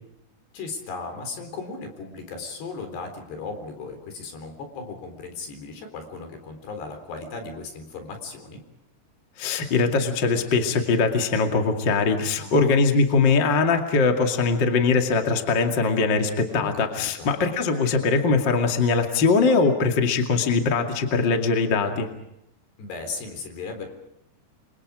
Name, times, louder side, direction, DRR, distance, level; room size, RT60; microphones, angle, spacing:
voice 1, 0.5-8.6 12.4-12.8 16.6-17.3 22.8-23.9, left 4 dB, 75° left, 6 dB, 6.1 m, -36 dB
voice 2, 9.4-22.1, left 4 dB, 35° left, 4 dB, 2.3 m, -21 dB
29.5 x 25.0 x 5.0 m, 0.83 s
omnidirectional pair, 4.8 m